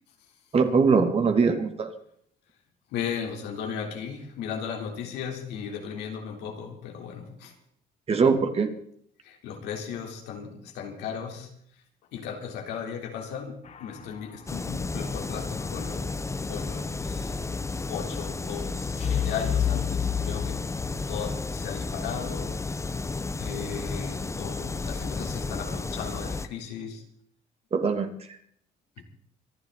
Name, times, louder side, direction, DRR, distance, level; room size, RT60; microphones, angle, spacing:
voice 1, 0.5-1.9 8.1-8.7 27.7-28.1, right 5 dB, 35° right, 6 dB, 2.6 m, -22 dB
voice 2, 2.9-7.6 9.2-11.5 12.1-17.3 17.9-23.0 23.4-27.0 29.0-29.1, left 7 dB, 85° left, 2 dB, 3.7 m, -36 dB
sound 1, 13.6-14.5 19.0-22.0 22.2-22.4, left 9 dB, 40° left, 1.3 m, -32 dB
sound 2, 14.5-26.5, left 3 dB, 15° left, 0.9 m, -32 dB
25.5 x 11.0 x 4.1 m, 0.66 s
cardioid pair, 110°, 17 cm